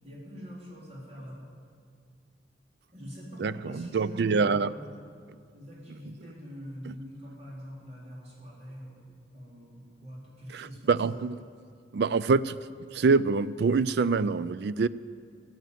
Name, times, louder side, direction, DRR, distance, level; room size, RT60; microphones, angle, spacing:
voice 1, 0.0-1.5 2.9-4.8 5.5-9.0 9.3-11.2, equal, 40° right, -5 dB, 3.8 m, -44 dB
voice 2, 3.4-4.7 6.9-7.0 10.5-11.4 11.9-14.9, right 4 dB, 65° right, 17 dB, 0.4 m, -26 dB
15.0 x 8.2 x 9.2 m, 2.2 s
head